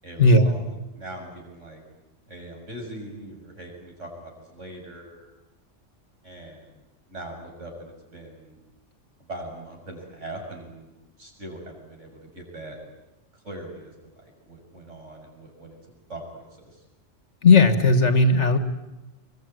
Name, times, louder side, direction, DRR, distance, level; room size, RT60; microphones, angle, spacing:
voice 1, 0.0-1.8 2.3-5.3 6.2-6.8 7.1-8.6 9.2-10.9 11.2-12.8 13.3-15.8 16.1-16.8, right 1 dB, 75° right, 1 dB, 7.3 m, -41 dB
voice 2, 17.4-18.6, left 3 dB, 65° left, 9 dB, 2.0 m, -16 dB
25.5 x 22.5 x 9.3 m, 1.0 s
omnidirectional pair, 1.3 m